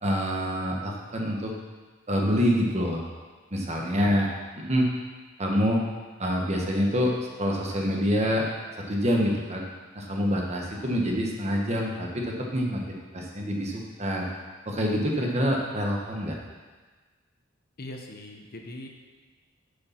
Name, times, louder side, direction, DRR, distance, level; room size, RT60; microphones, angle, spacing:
voice 1, 0.0-1.5 2.1-3.0 3.5-4.3 4.6-4.9 5.4-5.8 6.2-8.5 8.9-9.6 9.9-12.8 13.1-14.3 14.7-16.4, equal, 35° right, -1 dB, 1.4 m, -26 dB
voice 2, 3.8-4.1 17.8-18.9, left 1 dB, 50° left, 3 dB, 1.0 m, -41 dB
8.1 x 6.6 x 5.9 m, 1.3 s
head